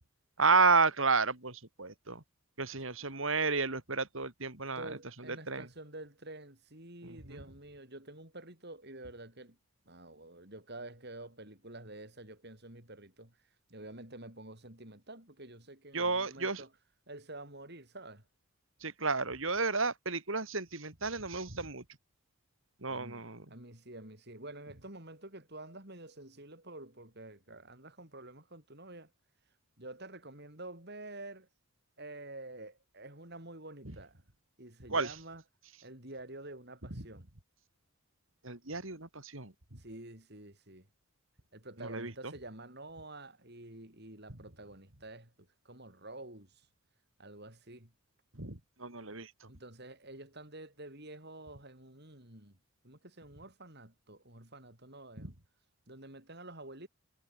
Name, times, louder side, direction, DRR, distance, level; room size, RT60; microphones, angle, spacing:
voice 1, 0.4-2.2 2.6-4.9 5.5-5.6 7.0-7.4 15.9-16.6 18.8-21.8 22.8-23.4 34.9-35.1 38.4-39.5 41.8-42.3 48.3-49.3 55.2-55.3, right 4 dB, 65° right, 3.8 m, -31 dB
voice 2, 4.6-9.6 9.9-13.4 13.7-16.7 17.1-18.3 22.9-23.2 23.5-29.1 29.8-31.5 32.0-34.2 34.6-35.4 35.8-37.3 39.8-40.9 41.5-46.7 47.2-47.9 49.5-52.6 52.8-55.4 55.9-56.9, right 2 dB, 50° right, 6.5 m, -49 dB
head